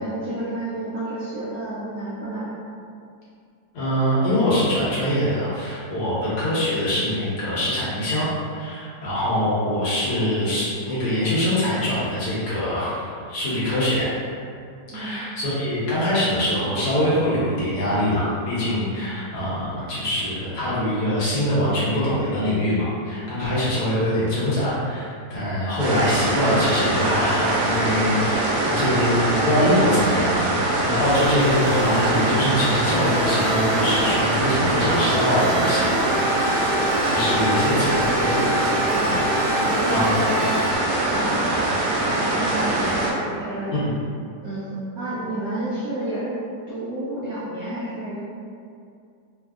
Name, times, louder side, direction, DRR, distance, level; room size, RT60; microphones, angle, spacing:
voice 1, 0.0-2.5 14.9-15.1 37.3-39.1 39.6-40.8 41.1-41.7 42.1-43.8 44.4-46.3 46.7-48.2, right 1 dB, 70° right, -11 dB, 0.9 m, -30 dB
voice 2, 3.7-14.1 14.9-36.4 37.0-38.4 39.0-39.2 39.9-40.2 43.7-43.9, left 1 dB, 65° left, -10 dB, 1.3 m, -23 dB
sound 1, 25.8-43.1, right 2 dB, 90° right, 1.3 m, -23 dB
sound 2, 31.0-40.8, equal, 35° right, 0.9 m, -29 dB
3.4 x 2.0 x 2.3 m, 2.4 s
omnidirectional pair, 2.0 m